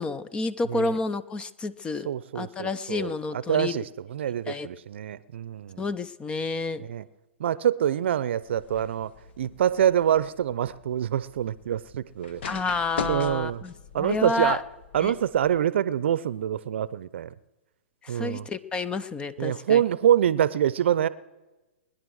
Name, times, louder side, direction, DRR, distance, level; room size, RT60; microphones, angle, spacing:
voice 1, 0.0-2.1 2.3-3.8 4.5-4.7 5.8-6.8 12.4-14.6 15.0-15.1 18.0-19.8, left 3 dB, 15° left, 0.6 m, -30 dB
voice 2, 2.0-5.8 6.9-7.0 7.4-9.1 9.4-12.4 13.1-13.6 13.9-14.6 14.9-17.3 18.1-18.5 19.4-21.1, right 10 dB, 65° right, 0.7 m, -25 dB
sound 1, 8.4-15.6, left 5 dB, 60° left, 1.4 m, -41 dB
21.5 x 10.5 x 6.4 m
hypercardioid pair, 130°, 7 cm